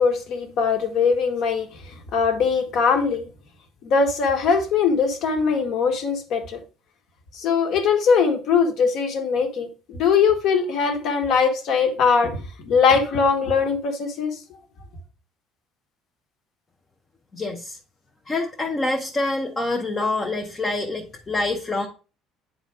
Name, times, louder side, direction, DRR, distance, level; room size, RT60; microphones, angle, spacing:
voice 1, 0.0-3.3 3.8-6.6 7.3-14.4, left 5 dB, 50° left, 1.3 m, -21 dB
voice 2, 17.3-17.8 18.3-21.9, left 2 dB, 15° left, 0.7 m, -26 dB
9.1 x 3.9 x 3.4 m
cardioid pair, 170°, 0 cm